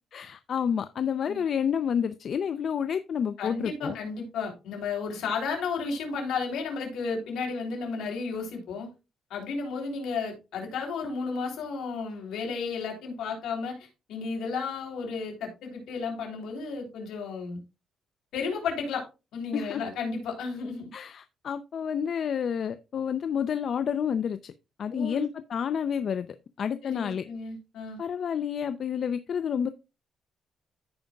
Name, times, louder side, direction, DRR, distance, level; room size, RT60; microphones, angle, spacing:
voice 1, 0.1-4.0 19.5-19.8 20.9-24.5 24.8-26.3 26.6-27.2 28.0-29.7, left 7 dB, 55° left, 0.5 m, -29 dB
voice 2, 3.4-8.9 9.3-17.6 18.3-19.0 19.3-20.9 24.9-25.2 26.8-28.0, left 5 dB, 80° left, 3.3 m, -33 dB
14.5 x 5.1 x 2.3 m
cardioid pair, 90°, 0 cm